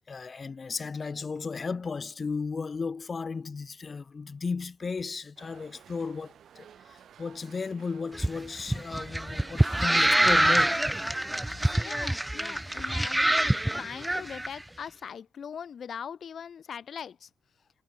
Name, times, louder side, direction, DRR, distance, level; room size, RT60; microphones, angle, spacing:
voice 1, 0.1-10.8 11.5-11.8, left 4 dB, 35° left, 0.7 m, -35 dB
sound 1, 5.4-11.8, right 9 dB, 60° right, 4.6 m, -53 dB
sound 2, 8.1-14.5, right 1 dB, 10° right, 0.3 m, -25 dB
voice 2, 11.7-17.3, left 7 dB, 50° left, 1.3 m, -41 dB
cardioid pair, 90°, 0 cm